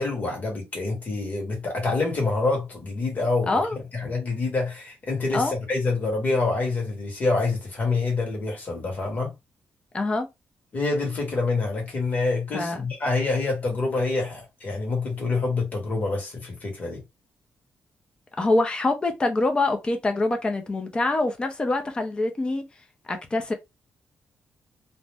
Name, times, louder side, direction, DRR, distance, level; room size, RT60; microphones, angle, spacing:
voice 1, 0.0-3.6 3.9-9.3 10.7-17.0, left 3 dB, 35° left, 1.4 m, -26 dB
voice 2, 3.5-3.8 5.3-5.5 9.9-10.3 12.5-12.8 18.4-22.7 23.1-23.5, left 2 dB, 20° left, 0.5 m, -25 dB
2.6 x 2.0 x 3.3 m
wide cardioid pair, 150°, 4 cm